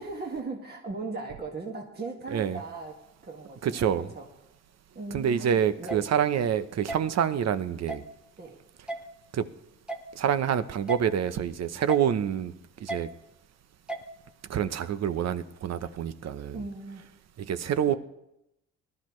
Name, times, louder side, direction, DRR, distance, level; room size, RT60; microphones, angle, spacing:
voice 1, 0.0-3.0 3.2-4.3 5.0-6.1 8.4-8.6 16.5-17.1 17.9-18.0, right 3 dB, 35° right, 2.0 m, -38 dB
voice 2, 2.3-2.6 3.6-4.1 5.1-8.0 9.3-9.4 10.1-12.5 12.8-13.1 14.5-16.6 17.4-18.0, right 8 dB, 60° right, 0.9 m, -27 dB
sound 1, 5.9-6.0 6.9-7.0 7.9-8.0 8.9-9.0 9.9-10.1 10.9-11.0 11.9-12.1 12.9-13.0 13.9-14.1, right 2 dB, 5° right, 1.1 m, -34 dB
19.0 x 12.0 x 3.2 m
cardioid pair, 90°, 30 cm